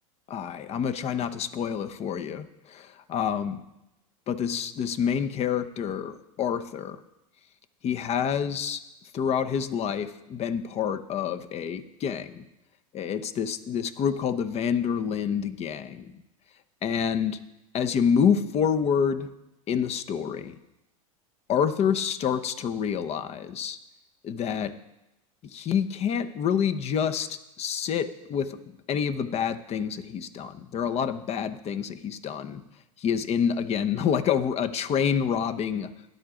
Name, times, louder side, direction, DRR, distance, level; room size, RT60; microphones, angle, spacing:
voice 1, 0.3-3.6 4.3-7.0 7.8-8.8 9.1-12.4 12.9-16.1 16.8-17.4 17.7-19.3 19.7-20.6 21.5-23.8 24.2-24.7 25.5-32.6 33.0-35.9, left 7 dB, 35° left, 9 dB, 0.9 m, -27 dB
13.0 x 10.5 x 3.8 m, 0.92 s
hypercardioid pair, 100°, 19 cm